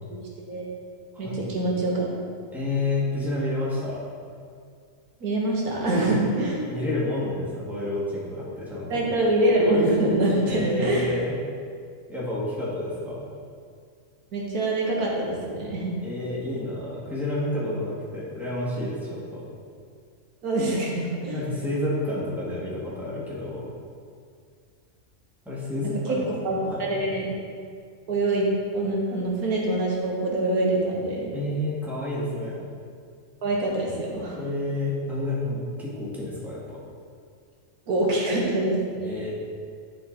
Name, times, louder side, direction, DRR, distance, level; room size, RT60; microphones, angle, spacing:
voice 1, 1.2-2.1 5.2-6.6 8.9-11.1 14.3-15.9 20.4-21.4 26.1-26.2 26.4-27.3 28.1-31.3 33.4-34.4 37.9-39.2, right 1 dB, 85° right, -3 dB, 1.7 m, -24 dB
voice 2, 2.5-4.0 6.0-6.1 6.7-9.0 10.4-11.4 12.1-13.3 16.0-19.4 21.3-23.7 25.4-26.3 26.6-26.8 31.3-32.6 34.4-36.8 39.0-39.3, left 1 dB, ahead, -8 dB, 1.8 m, -29 dB
11.0 x 4.3 x 3.9 m, 2.2 s
omnidirectional pair, 1.5 m